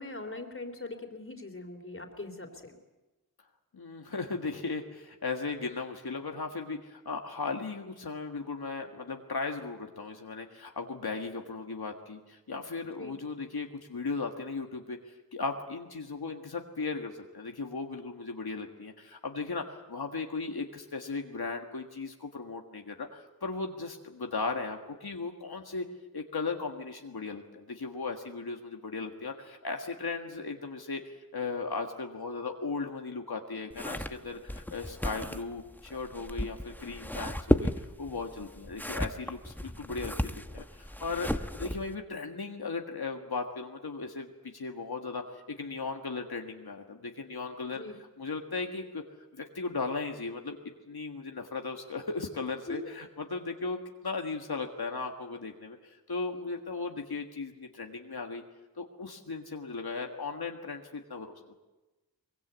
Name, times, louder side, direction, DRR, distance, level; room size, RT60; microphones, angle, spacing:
voice 1, 0.0-2.7 13.0-13.1 47.7-47.9 52.7-52.8, left 2 dB, 35° left, 6 dB, 3.4 m, -41 dB
voice 2, 3.7-25.9 26.1-31.0 31.3-49.0 49.3-50.6 50.9-58.4 58.8-61.3, left 4 dB, 85° left, 3 dB, 1.7 m, -37 dB
sound 1, 33.7-41.9, left 1 dB, 5° left, 1.0 m, -34 dB
23.0 x 22.0 x 8.2 m, 1.1 s
wide cardioid pair, 65°, 37 cm